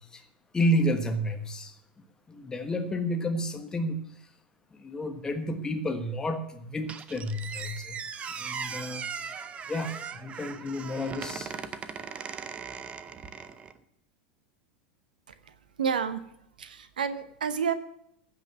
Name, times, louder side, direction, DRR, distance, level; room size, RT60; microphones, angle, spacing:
voice 1, 0.5-1.7 2.3-4.0 4.8-8.0 8.4-9.0 9.7-11.5, equal, 15° left, 5 dB, 1.5 m, -30 dB
Squeak, 6.9-13.8, right 6 dB, 25° right, 0.7 m, -39 dB
voice 2, 15.3-16.3 16.6-17.7, right 7 dB, 70° right, 12 dB, 0.9 m, -30 dB
15.5 x 5.7 x 7.0 m, 0.76 s
figure-of-eight pair, 85°, 5 cm